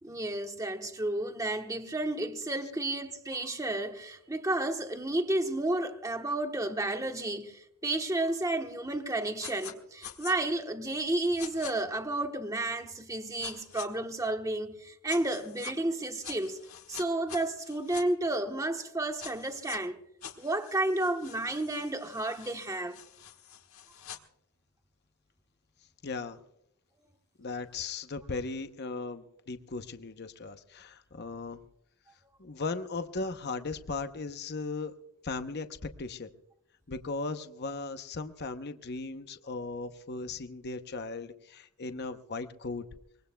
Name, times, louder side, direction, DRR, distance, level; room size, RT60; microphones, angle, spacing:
voice 1, 0.0-16.6 16.9-20.0 20.4-22.9, right 2 dB, 15° right, 1.1 m, -32 dB
sound 1, 9.4-9.7 10.0-10.4 11.4-11.7 13.4-13.9 15.1-15.7 16.2-18.0 19.2-19.8 20.2-24.2, left 9 dB, 65° left, 1.4 m, -46 dB
voice 2, 26.0-26.4 27.4-31.6 32.4-34.9 35.2-36.3 36.9-42.8, left 3 dB, 50° left, 0.8 m, -37 dB
24.0 x 22.0 x 2.2 m
head